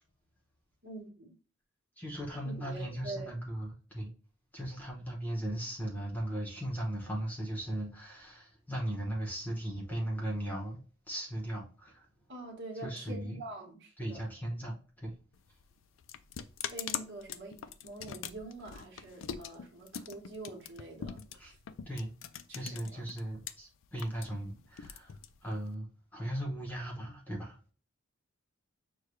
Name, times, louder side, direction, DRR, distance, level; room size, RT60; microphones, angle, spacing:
voice 1, 0.8-1.4 2.4-3.4 12.3-14.3 16.7-21.2 22.5-23.1, right 2 dB, 55° right, 1.3 m, -45 dB
voice 2, 2.0-4.1 4.5-10.8 11.1-12.1 12.7-13.4 14.0-15.1 21.3-21.5 21.9-22.1 22.5-25.1 25.4-27.6, right 1 dB, 10° left, 0.9 m, -37 dB
sound 1, 15.3-23.5 23.8-25.8, left 8 dB, 65° left, 0.3 m, -42 dB
6.4 x 2.3 x 3.0 m
head